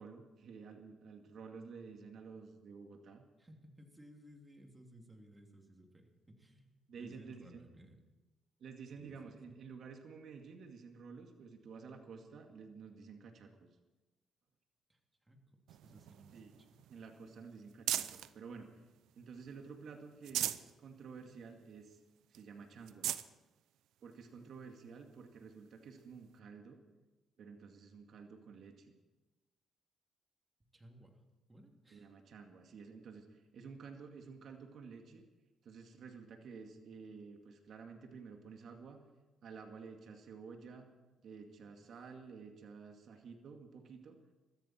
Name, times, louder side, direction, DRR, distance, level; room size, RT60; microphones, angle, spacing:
voice 1, 0.0-3.2 6.9-7.6 8.6-13.7 16.3-16.6 16.9-18.7 19.2-22.0 22.3-23.1 24.0-26.8 27.4-29.0 31.9-35.2 35.6-39.0 39.4-40.9 41.2-44.2, right 5 dB, 65° right, 4 dB, 2.2 m, -51 dB
voice 2, 3.4-8.0 9.0-9.4 14.9-16.4 16.7-16.8 30.6-31.2 31.5-32.2, right 1 dB, 15° right, 2 dB, 3.0 m, -59 dB
sound 1, 15.7-18.3 18.9-19.6 20.0-20.7 21.2-21.3 21.6-21.7 22.3-22.4 22.8-23.3 24.1-24.2 26.0-26.1, right 12 dB, 85° right, 0.6 m, -40 dB
22.5 x 14.0 x 4.5 m, 1.1 s
cardioid pair, 90°, 0 cm